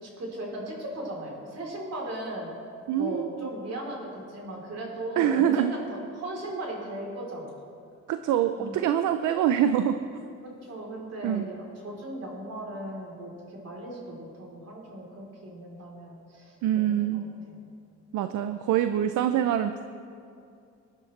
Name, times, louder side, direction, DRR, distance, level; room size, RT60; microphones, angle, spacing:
voice 1, 0.0-2.5 3.0-7.5 8.6-8.9 10.4-17.0 17.5-17.6, right 1 dB, 55° right, -2 dB, 3.6 m, -37 dB
voice 2, 2.9-3.5 5.2-5.7 8.1-10.1 11.2-11.5 16.6-17.2 18.1-19.8, right 10 dB, 80° right, 9 dB, 0.6 m, -25 dB
20.0 x 10.5 x 3.3 m, 2.4 s
cardioid pair, 90°, 30 cm